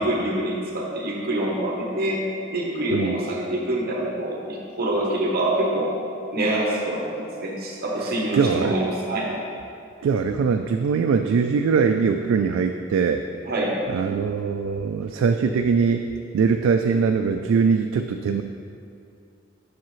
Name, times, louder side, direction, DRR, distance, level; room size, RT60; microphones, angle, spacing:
voice 1, 0.0-6.0 6.3-9.3 13.4-13.8, right 1 dB, 50° right, -2 dB, 0.9 m, -25 dB
voice 2, 8.3-8.8 10.0-13.2 13.9-16.1 16.3-18.4, right 5 dB, 90° right, 5 dB, 0.3 m, -21 dB
7.4 x 6.4 x 3.1 m, 2.5 s
head